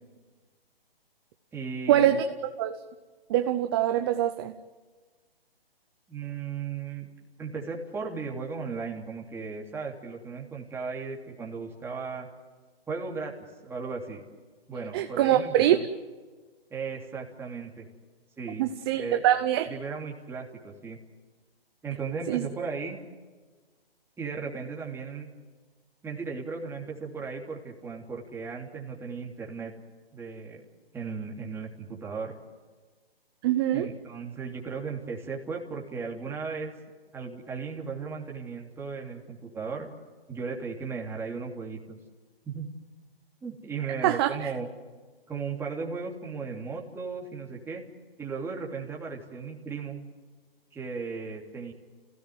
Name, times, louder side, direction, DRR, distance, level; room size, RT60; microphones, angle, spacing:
voice 1, 1.5-2.2 6.1-7.1 7.4-12.3 12.9-13.3 13.6-14.2 14.7-15.8 16.7-17.9 18.4-19.2 19.7-21.0 21.8-23.0 24.2-25.3 26.0-29.7 30.1-30.6 30.9-32.3 33.7-36.7 37.1-39.9 40.3-42.0 42.4-42.7 43.4-44.7 45.3-47.8 48.2-50.0 50.7-51.7, right 5 dB, 10° right, 0 dB, 3.0 m, -36 dB
voice 2, 3.3-4.5 14.9-15.8 18.6-19.7 22.3-22.5 33.4-33.9 44.0-44.5, right 12 dB, 25° right, 8 dB, 0.8 m, -24 dB
29.0 x 17.0 x 9.5 m, 1.4 s
hypercardioid pair, 145°, 30 cm